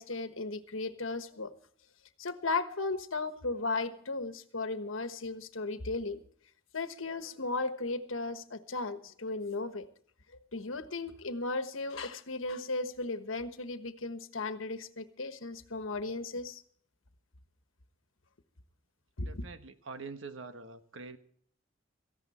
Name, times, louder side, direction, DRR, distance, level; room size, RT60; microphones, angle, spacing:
voice 1, 0.0-1.5 2.2-6.2 6.7-9.9 10.5-16.6 19.2-19.4, left 3 dB, 85° left, 10 dB, 1.3 m, -36 dB
voice 2, 19.2-21.2, right 4 dB, 75° right, 9 dB, 1.4 m, -45 dB
17.5 x 15.0 x 4.3 m, 0.62 s
head